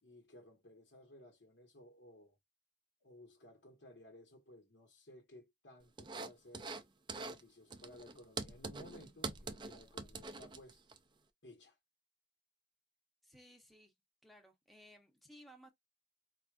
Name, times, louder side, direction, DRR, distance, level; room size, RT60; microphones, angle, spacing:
voice 1, 0.0-2.4 3.0-6.7 7.1-10.8 11.4-11.8, left 1 dB, 70° left, 1.1 m, -58 dB
sound 1, 6.0-6.8 7.1-7.4 7.7-11.0, right 3 dB, 25° right, 0.4 m, -44 dB
voice 2, 13.2-13.9 14.2-15.7, equal, ahead, 0.8 m, -59 dB
4.6 x 2.4 x 2.4 m
head